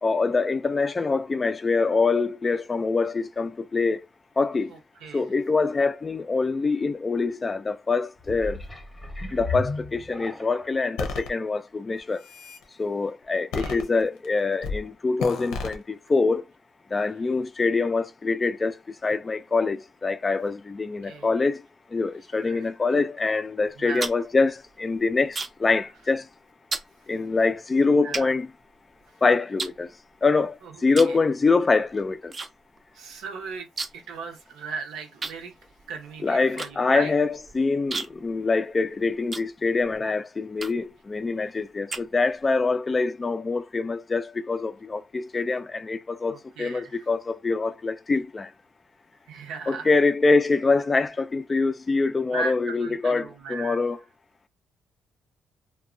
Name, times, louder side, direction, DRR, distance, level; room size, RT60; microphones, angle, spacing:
voice 1, 0.0-4.0 4.4-4.7 5.1-8.6 9.3-12.2 12.8-16.4 16.9-21.6 21.9-26.3 27.1-28.5 29.2-29.9 30.2-30.6 30.8-32.3 36.2-48.5 49.7-54.0, left 3 dB, 30° left, 0.3 m, -24 dB
voice 2, 4.7-5.3 13.6-13.8 21.0-21.3 22.4-22.7 23.8-24.1 28.0-28.3 30.6-30.7 31.1-31.2 32.9-33.7 33.9-35.5 35.9-37.1 46.3-46.9 49.3-49.9 52.3-53.8, right 4 dB, 85° right, 0.7 m, -37 dB
sound 1, 8.2-10.8 11.4-11.5, left 2 dB, 10° left, 0.7 m, -34 dB
sound 2, 11.0-11.3 12.0-12.6 13.5-14.3 14.6-14.8 15.2-15.8, left 4 dB, 85° left, 0.6 m, -32 dB
sound 3, 23.7-25.7 26.0-26.3 26.7-26.9 27.6-27.7 28.1-29.1 29.6-30.4 30.9-31.2 31.5-32.5 32.8-32.9 33.1-34.1 34.4-34.5 35.2-40.0 40.6-41.0 41.5-42.5, right 3 dB, 35° right, 0.5 m, -35 dB
2.8 x 2.1 x 2.4 m
cardioid pair, 85°, 0 cm